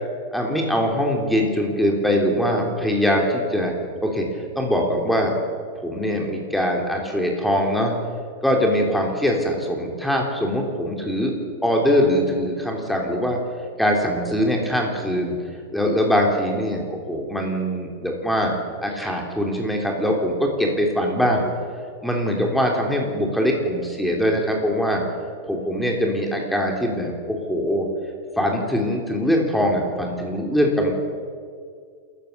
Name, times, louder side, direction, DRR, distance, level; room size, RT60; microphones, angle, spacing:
voice 1, 0.3-3.7 4.0-4.2 4.5-5.3 5.7-7.9 8.4-11.3 11.6-13.4 13.8-15.4 15.7-16.8 17.1-18.5 18.8-21.4 22.0-25.0 25.5-27.9 28.4-30.9, equal, ahead, 1 dB, 3.4 m, -22 dB
28.0 x 14.5 x 6.9 m, 2.1 s
supercardioid pair, 150°, 0 cm